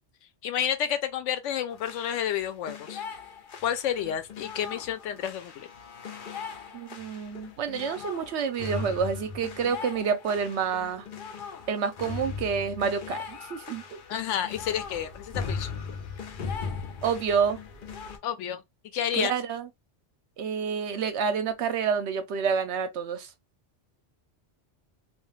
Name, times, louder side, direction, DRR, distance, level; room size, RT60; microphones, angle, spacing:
voice 1, 0.4-3.0 3.6-5.7 14.1-15.7 18.2-18.6 18.9-19.3, left 9 dB, 85° left, 0.9 m, -30 dB
sound 1, 1.7-18.2, left 5 dB, 55° left, 0.7 m, -39 dB
voice 2, 6.7-11.0 11.7-14.0 17.0-17.6 19.1-19.7 20.4-23.3, right 6 dB, 70° right, 0.9 m, -28 dB
2.4 x 2.3 x 3.1 m
omnidirectional pair, 1.2 m